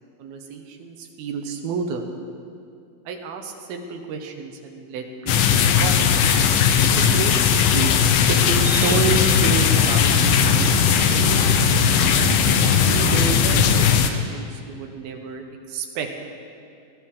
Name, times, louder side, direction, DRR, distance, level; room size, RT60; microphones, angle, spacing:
voice 1, 0.2-2.1 3.1-6.0 6.9-7.9 8.3-11.5 12.6-16.1, right 5 dB, 75° right, 4 dB, 2.9 m, -30 dB
sound 1, 5.3-14.1, left 8 dB, 75° left, 2.3 m, -18 dB
sound 2, 8.6-13.8, right 2 dB, 55° right, 1.1 m, -27 dB
19.5 x 13.5 x 3.7 m, 2.4 s
omnidirectional pair, 4.5 m